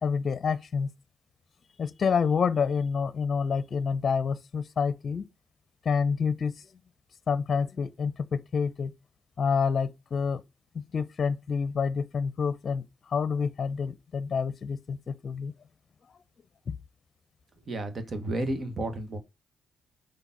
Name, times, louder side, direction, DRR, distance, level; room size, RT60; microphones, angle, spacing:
voice 1, 0.0-0.9 1.8-5.3 5.8-6.5 7.3-8.9 9.4-10.4 10.7-15.5 16.7-16.8, left 6 dB, 55° left, 0.6 m, -28 dB
voice 2, 17.6-19.2, right 1 dB, 50° right, 1.6 m, -32 dB
5.2 x 4.0 x 6.0 m
supercardioid pair, 60°, 0 cm